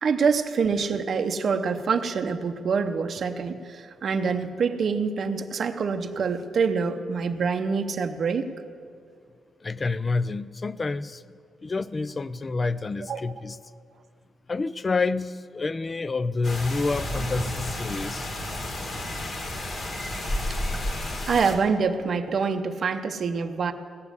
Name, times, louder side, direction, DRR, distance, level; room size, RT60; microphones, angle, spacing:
voice 1, 0.0-8.5 13.1-13.2 21.3-23.7, right 5 dB, 45° right, 0.7 m, -26 dB
voice 2, 9.6-11.2 11.6-13.6 14.5-18.3, left 3 dB, 25° left, 0.4 m, -28 dB
sound 1, 16.4-21.5, left 1 dB, 40° left, 1.8 m, -31 dB
16.5 x 7.2 x 9.6 m
cardioid pair, 155°, 0 cm